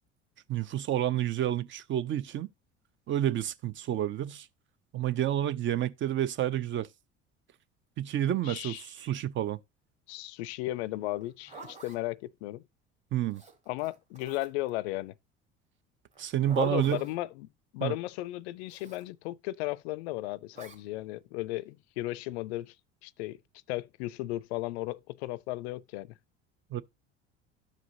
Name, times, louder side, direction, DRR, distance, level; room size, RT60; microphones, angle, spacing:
voice 1, 0.5-2.5 3.1-4.5 4.9-6.9 8.0-9.6 13.1-13.4 16.2-17.0 17.8-18.0 26.7-26.8, right 11 dB, 35° right, 0.5 m, -29 dB
voice 2, 8.4-8.9 10.1-12.6 13.7-15.1 16.6-17.5 17.7-22.7 23.0-23.4 23.7-26.1, left 17 dB, 65° left, 0.5 m, -35 dB
Zipper (clothing), 11.2-12.0 13.3-14.7 16.1-17.2 18.7-19.1 20.5-20.8, right 3 dB, 20° right, 1.9 m, -50 dB
13.0 x 4.9 x 2.6 m
figure-of-eight pair, 65°, 35 cm